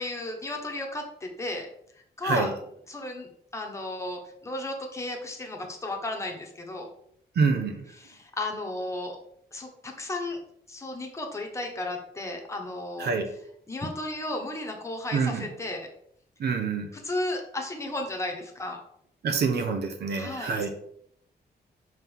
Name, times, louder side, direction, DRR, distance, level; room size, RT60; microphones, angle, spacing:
voice 1, 0.0-1.7 2.2-2.5 2.9-3.3 3.5-6.9 7.9-9.2 9.5-10.4 10.7-13.1 13.7-15.8 16.9-18.8 20.2-20.7, left 2 dB, 15° left, 2 dB, 1.1 m, -34 dB
voice 2, 7.3-7.8 13.0-13.3 15.1-15.5 16.4-16.9 19.2-20.7, right 5 dB, 70° right, 5 dB, 1.1 m, -26 dB
5.4 x 3.9 x 5.5 m, 0.70 s
wide cardioid pair, 165°, 17 cm